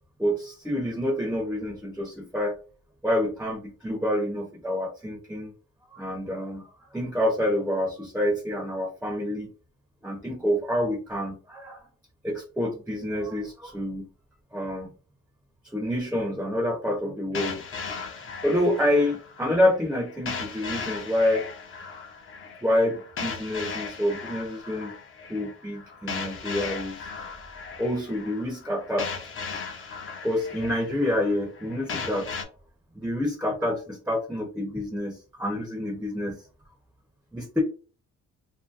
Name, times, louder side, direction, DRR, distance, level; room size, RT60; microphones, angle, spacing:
voice 1, 0.2-2.6 3.0-5.5 5.9-6.7 6.9-9.5 10.0-11.9 12.2-14.1 14.5-14.9 15.7-17.6 18.4-21.5 22.6-24.9 25.3-27.0 27.8-29.1 30.2-32.4 32.9-36.4 37.3-37.6, left 1 dB, 5° right, 3 dB, 0.5 m, -27 dB
sound 1, 17.3-32.4, left 5 dB, 45° left, 0.6 m, -37 dB
2.6 x 2.6 x 2.3 m, 0.36 s
cardioid pair, 90°, 30 cm